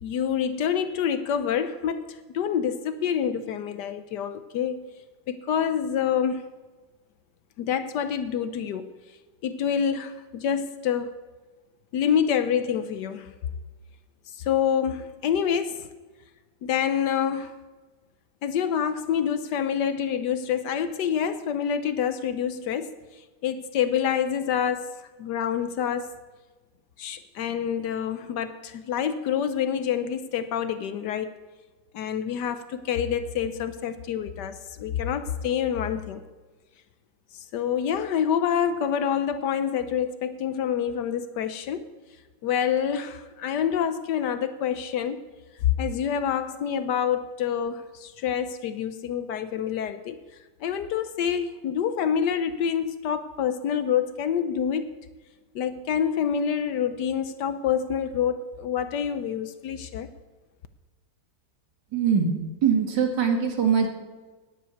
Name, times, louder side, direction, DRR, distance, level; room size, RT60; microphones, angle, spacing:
voice 1, 0.0-4.9 5.3-6.5 7.6-8.9 9.4-11.1 11.9-13.3 14.3-15.9 16.6-17.5 18.4-22.9 23.4-24.9 25.2-26.1 27.0-31.3 31.9-36.2 37.3-41.9 42.4-45.2 45.6-50.2 50.6-55.0 55.5-60.1, left 8 dB, 75° left, 10 dB, 1.3 m, -27 dB
voice 2, 61.9-62.4 62.6-63.9, right 7 dB, 75° right, 3 dB, 2.3 m, -22 dB
9.9 x 8.2 x 9.4 m, 1.3 s
omnidirectional pair, 1.9 m